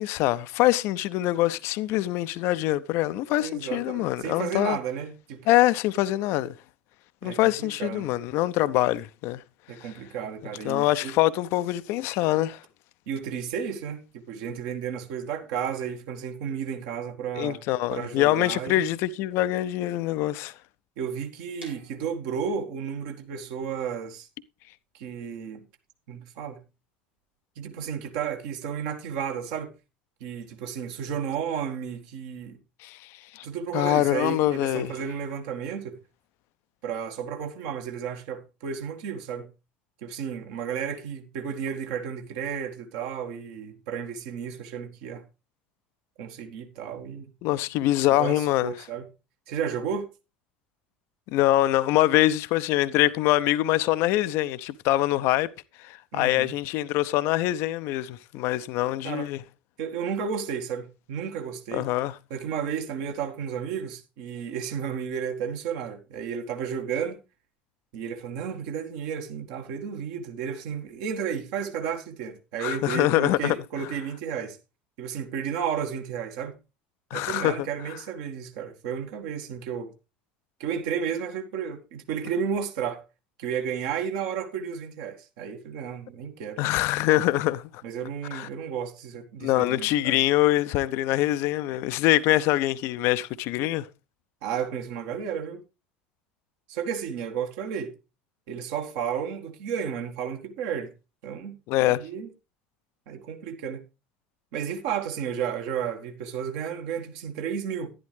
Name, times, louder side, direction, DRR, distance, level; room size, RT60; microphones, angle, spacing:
voice 1, 0.0-4.8 5.5-6.5 7.2-9.4 9.8-9.9 10.6-12.6 17.4-20.5 32.8-33.0 33.3-33.5 33.7-34.9 47.4-48.7 51.3-55.5 55.8-59.4 61.7-62.1 72.6-73.6 77.1-77.7 86.6-87.8 88.3-88.5 89.4-93.9 101.7-102.0, left 15 dB, 50° left, 0.5 m, -24 dB
voice 2, 3.4-5.4 7.2-8.2 9.7-11.2 13.1-17.6 17.9-18.9 21.0-24.3 24.9-25.6 26.1-26.6 27.6-29.7 30.2-32.6 33.4-36.0 36.8-39.5 40.0-45.2 46.2-47.3 48.1-49.1 49.5-50.1 56.1-56.5 59.0-59.3 59.8-61.9 62.3-67.2 67.9-74.6 75.0-76.6 77.1-79.9 80.6-83.0 83.4-86.6 87.8-90.2 94.4-95.6 96.7-97.9 98.5-100.9 101.2-102.3 103.1-103.8 104.5-107.9, right 7 dB, 55° right, 1.7 m, -32 dB
sound 1, 21.6-27.4, right 2 dB, 90° right, 3.1 m, -55 dB
11.0 x 11.0 x 3.3 m
figure-of-eight pair, 70°, 6 cm